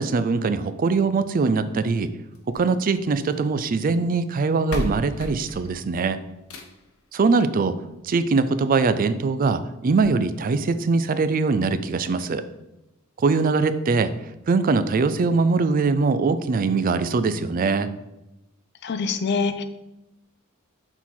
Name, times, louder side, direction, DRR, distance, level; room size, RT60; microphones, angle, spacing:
voice 1, 0.0-2.1 2.5-6.2 7.1-7.8 8.0-12.4 13.2-14.1 14.5-17.9, right 4 dB, 40° right, 12 dB, 0.4 m, -22 dB
sound 1, 2.3-3.5 4.3-4.4 4.7-7.0 8.3-8.4 8.9-9.0 9.3-9.4 9.9-10.0, left 1 dB, 80° left, 0.9 m, -35 dB
voice 2, 18.8-19.6, left 4 dB, 55° left, 10 dB, 0.5 m, -24 dB
6.1 x 3.9 x 4.4 m, 0.92 s
head